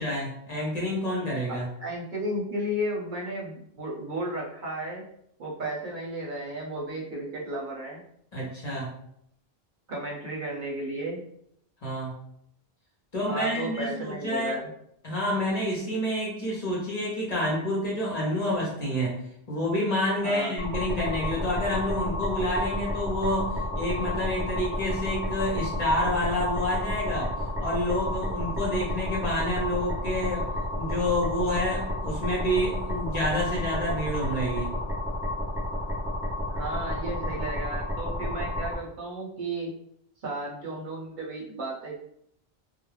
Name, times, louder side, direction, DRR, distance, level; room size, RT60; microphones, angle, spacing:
voice 1, 0.0-1.7 8.3-8.9 11.8-12.1 13.1-14.5 15.0-19.2 19.5-27.3 27.6-30.5 30.8-34.7, left 1 dB, 45° left, -5 dB, 0.8 m, -28 dB
voice 2, 1.5-5.1 5.4-8.0 9.9-11.3 13.3-14.7 20.2-20.6 36.5-39.7 40.2-42.0, right 1 dB, 55° right, -3 dB, 0.7 m, -34 dB
sound 1, 20.6-38.7, left 1 dB, 5° right, 0.5 m, -31 dB
2.3 x 2.0 x 3.1 m, 0.71 s
omnidirectional pair, 1.1 m